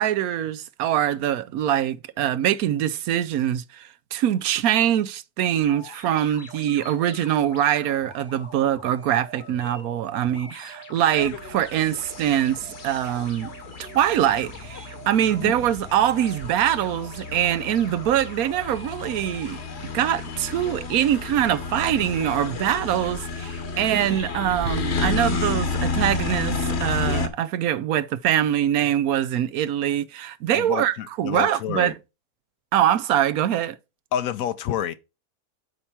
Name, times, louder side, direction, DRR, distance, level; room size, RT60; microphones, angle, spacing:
voice 1, 0.0-13.5 13.8-19.6 19.9-31.9 32.7-33.8, right 11 dB, 75° right, 1.0 m, -23 dB
sound 1, 5.6-24.2, left 1 dB, 90° left, 2.8 m, -44 dB
sound 2, 11.1-27.3, left 4 dB, 50° left, 1.2 m, -31 dB
sound 3, 14.3-14.9 15.3-15.4 15.6-19.6 20.1-21.0 21.3-27.1, right 6 dB, 55° right, 0.4 m, -44 dB
voice 2, 30.5-31.9 34.1-34.9, left 10 dB, 70° left, 1.0 m, -28 dB
8.0 x 4.5 x 5.7 m
omnidirectional pair, 1.6 m